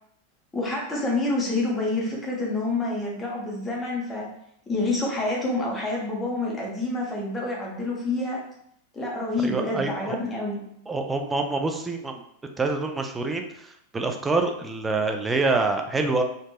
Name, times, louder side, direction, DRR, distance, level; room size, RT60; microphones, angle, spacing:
voice 1, 0.5-4.3 4.7-8.4 8.9-10.7, left 2 dB, 15° left, -2 dB, 0.8 m, -27 dB
voice 2, 9.4-10.2 10.9-12.2 12.6-16.2, right 3 dB, 15° right, 4 dB, 0.3 m, -26 dB
2.9 x 2.5 x 2.2 m, 0.70 s
figure-of-eight pair, 90°, 0 cm